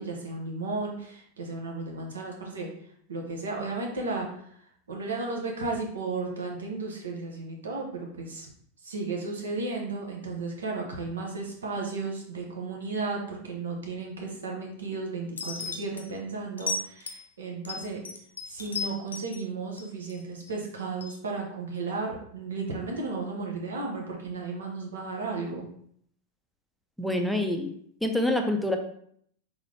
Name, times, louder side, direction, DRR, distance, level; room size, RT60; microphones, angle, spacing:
voice 1, 0.0-2.7 3.1-4.3 4.9-8.5 8.8-18.0 18.4-25.7, right 3 dB, 65° right, 0 dB, 1.1 m, -34 dB
sound 1, 15.4-16.0 16.6-17.2 17.6-19.4 19.8-20.5 21.0-21.2, left 3 dB, 70° left, 0.5 m, -35 dB
voice 2, 27.0-27.7 28.0-28.8, left 1 dB, ahead, 3 dB, 0.6 m, -26 dB
4.0 x 3.8 x 3.2 m, 0.65 s
figure-of-eight pair, 90°, 0 cm